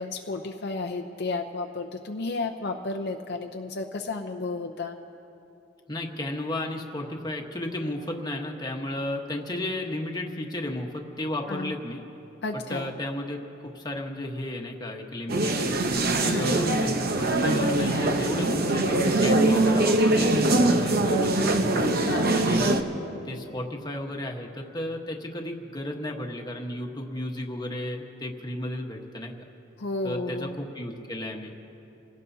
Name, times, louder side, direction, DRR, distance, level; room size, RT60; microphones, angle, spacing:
voice 1, 0.0-5.0 11.5-11.7 12.4-12.9 16.2-16.6 22.0-22.4 29.8-30.6, left 3 dB, 55° left, 4 dB, 0.7 m, -32 dB
voice 2, 5.9-12.0 12.7-15.9 16.4-21.7 22.3-22.8 23.2-29.4 30.0-31.5, left 1 dB, 20° left, 1 dB, 1.3 m, -34 dB
sound 1, 15.3-22.8, right 2 dB, 50° right, 0.9 m, -22 dB
27.5 x 17.5 x 2.8 m, 3.0 s
head